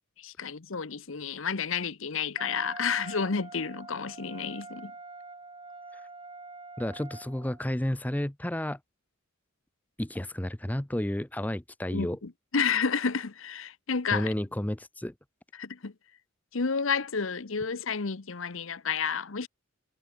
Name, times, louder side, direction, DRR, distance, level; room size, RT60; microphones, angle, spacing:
voice 1, 0.2-4.9 11.9-14.3 15.5-15.9 16.5-19.5, left 5 dB, 70° left, 1.0 m, -31 dB
Wind instrument woodwind instrument, 2.4-7.6, right 3 dB, 25° right, 5.0 m, -45 dB
voice 2, 6.8-8.8 10.0-12.2 14.1-15.1, left 1 dB, 10° left, 0.6 m, -31 dB
head